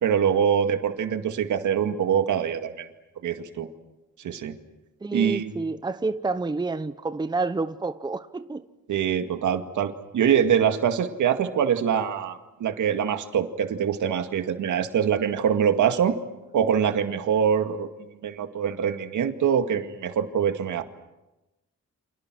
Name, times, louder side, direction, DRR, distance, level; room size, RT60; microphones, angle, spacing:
voice 1, 0.0-2.9 3.2-3.7 4.2-4.6 5.1-5.6 8.9-16.2 16.5-17.9 18.2-20.8, right 8 dB, 75° right, 2.1 m, -24 dB
voice 2, 5.0-8.6, right 3 dB, 15° right, 0.9 m, -29 dB
29.5 x 26.5 x 6.3 m
cardioid pair, 115°, 30 cm